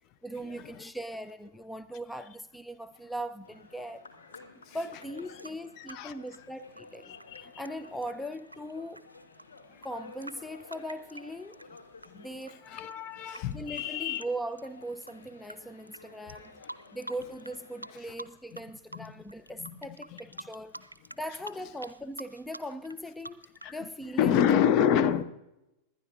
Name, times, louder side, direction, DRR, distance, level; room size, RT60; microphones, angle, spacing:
voice 1, 0.2-4.0 4.6-9.1 9.8-11.6 12.1-12.7 13.4-16.6 16.9-20.8 21.1-24.5, equal, 5° left, 0.4 m, -40 dB
sound 1, 3.4-18.0, left 3 dB, 70° left, 1.6 m, -53 dB
sound 2, 5.0-12.1 12.4-15.5 15.9-16.0 16.3-17.6 17.8-18.6 18.9-23.8, right 1 dB, 85° right, 0.5 m, -46 dB
voice 2, 5.8-6.1 7.3-7.5 12.1-12.2 12.7-14.2 18.9-19.1 19.6-19.7 23.6-23.8 24.2-25.2, left 9 dB, 40° left, 0.7 m, -27 dB
23.0 x 10.0 x 2.5 m
figure-of-eight pair, 90°, 0 cm